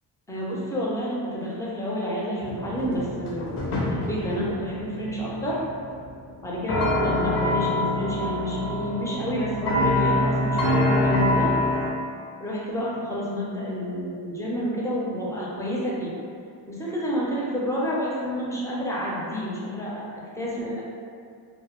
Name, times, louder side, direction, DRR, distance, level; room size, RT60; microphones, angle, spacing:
voice 1, 0.3-3.6 3.9-5.6 6.4-11.5 12.4-16.1 16.7-20.8, equal, 5° left, -5 dB, 0.4 m, -29 dB
sound 1, 2.4-11.9, left 1 dB, 90° left, 0.6 m, -25 dB
2.1 x 2.0 x 2.9 m, 2.3 s
wide cardioid pair, 105°, 47 cm